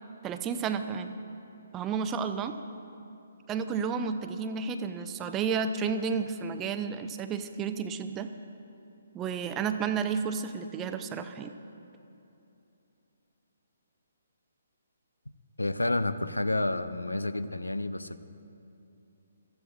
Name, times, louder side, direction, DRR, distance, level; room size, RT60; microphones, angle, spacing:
voice 1, 0.2-1.1 1.7-2.6 3.5-8.3 9.1-11.6, right 6 dB, 15° right, 8 dB, 0.6 m, -31 dB
voice 2, 15.6-18.2, left 2 dB, 80° left, 13 dB, 0.6 m, -30 dB
22.5 x 13.5 x 2.5 m, 2.8 s
figure-of-eight pair, 135°, 0 cm